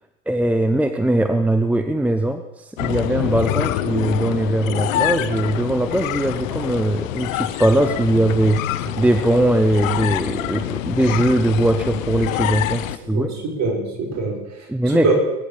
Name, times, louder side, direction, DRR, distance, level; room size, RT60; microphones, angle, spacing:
voice 1, 0.3-13.3 14.7-15.1, right 1 dB, 5° right, 7 dB, 0.9 m, -20 dB
sound 1, 2.8-13.0, left 14 dB, 80° left, 0.9 m, -26 dB
voice 2, 13.0-14.7 15.0-15.1, right 4 dB, 45° right, 1 dB, 5.4 m, -24 dB
21.5 x 10.0 x 5.2 m, 0.96 s
hypercardioid pair, 95°, 39 cm